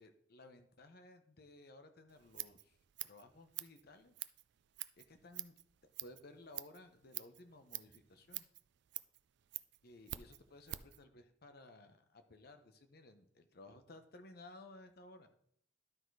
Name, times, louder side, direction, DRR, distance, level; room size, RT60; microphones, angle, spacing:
voice 1, 0.0-2.8 3.0-4.2 5.0-5.5 6.0-8.5 9.8-15.3, left 2 dB, 55° left, 8 dB, 0.9 m, -57 dB
Scissors, 2.1-11.0, right 16 dB, 65° right, 0.4 m, -48 dB
11.5 x 4.3 x 4.7 m, 0.66 s
head